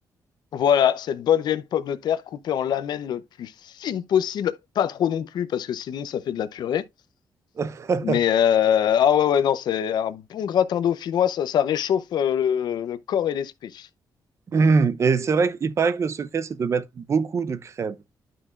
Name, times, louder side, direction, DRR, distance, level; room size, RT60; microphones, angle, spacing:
voice 1, 0.5-6.8 8.0-13.9, left 9 dB, 80° left, 0.7 m, -23 dB
voice 2, 7.6-8.2 14.5-18.0, right 5 dB, 40° right, 0.6 m, -23 dB
11.0 x 5.9 x 2.4 m
cardioid pair, 130°, 7 cm